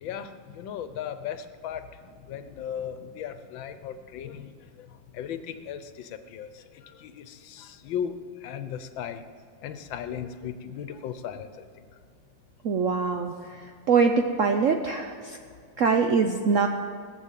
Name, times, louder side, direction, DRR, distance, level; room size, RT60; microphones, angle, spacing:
voice 1, 0.0-1.8 2.3-4.5 5.1-6.5 7.0-8.1 8.4-9.2 9.6-11.5, left 9 dB, 75° left, 11 dB, 1.5 m, -36 dB
voice 2, 12.6-13.3 13.9-15.1 15.8-16.7, right 5 dB, 85° right, 4 dB, 0.7 m, -22 dB
18.5 x 7.2 x 7.5 m, 2.2 s
omnidirectional pair, 2.2 m